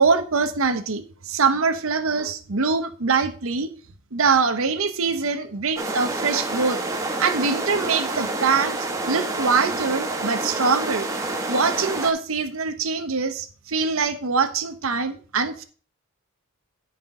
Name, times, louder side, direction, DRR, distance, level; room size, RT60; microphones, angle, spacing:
voice 1, 0.0-3.7 4.1-6.8 7.2-8.8 9.1-11.1 11.5-15.6, right 4 dB, 65° right, 0.9 m, -23 dB
sound 1, 5.8-12.1, right 2 dB, 15° right, 0.8 m, -28 dB
9.9 x 5.7 x 3.7 m
head